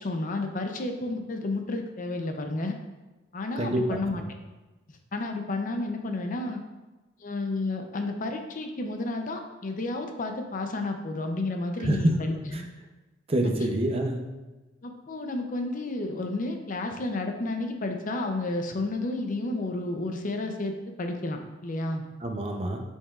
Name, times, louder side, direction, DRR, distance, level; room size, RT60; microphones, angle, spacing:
voice 1, 0.0-2.7 3.3-4.2 5.1-6.6 7.2-12.7 14.8-22.0, left 2 dB, 45° left, 4 dB, 0.6 m, -31 dB
voice 2, 3.6-4.0 11.8-12.1 12.5-12.6 13.3-14.2 22.2-22.8, right 1 dB, 30° right, 3 dB, 0.6 m, -26 dB
7.6 x 5.4 x 2.4 m, 1.1 s
head